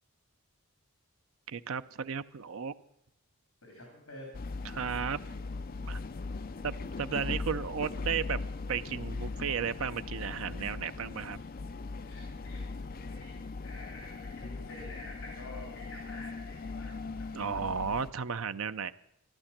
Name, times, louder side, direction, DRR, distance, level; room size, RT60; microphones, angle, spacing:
voice 1, 1.5-2.7 4.6-5.2 5.8-6.0 6.6-8.4 8.7-11.4 17.3-18.9, right 6 dB, 65° right, 12 dB, 0.5 m, -34 dB
voice 2, 3.6-4.3 7.1-7.2 12.0-12.6 12.9-16.9 17.2-17.4, left 1 dB, 70° left, 0 dB, 3.4 m, -48 dB
sound 1, 4.3-18.1, left 3 dB, 40° left, 0.5 m, -39 dB
14.5 x 11.5 x 7.3 m, 0.80 s
head